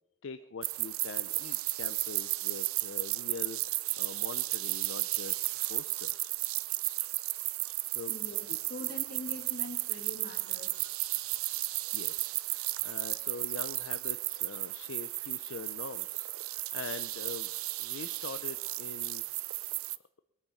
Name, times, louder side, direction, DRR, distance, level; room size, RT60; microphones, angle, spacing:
voice 1, 0.2-6.3 7.0-7.1 7.9-8.3 11.9-17.5 17.8-19.3, left 5 dB, 65° left, 11 dB, 0.5 m, -44 dB
sound 1, 0.6-20.0, right 19 dB, 80° right, 0.5 m, -34 dB
voice 2, 8.1-11.8, left 1 dB, 45° left, 5 dB, 2.0 m, -45 dB
21.0 x 8.6 x 5.7 m, 1.0 s
head